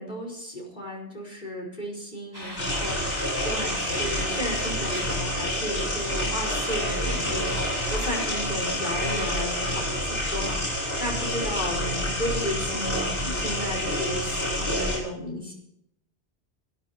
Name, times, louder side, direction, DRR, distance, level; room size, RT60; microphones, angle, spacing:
voice 1, 0.0-10.6 11.0-15.5, equal, 45° left, -1 dB, 5.2 m, -34 dB
sound 1, 2.3-10.0, equal, 20° right, 5.6 m, -39 dB
sound 2, 2.6-15.0, left 1 dB, 80° left, 8.0 m, -28 dB
17.0 x 15.5 x 4.4 m, 0.76 s
omnidirectional pair, 1.2 m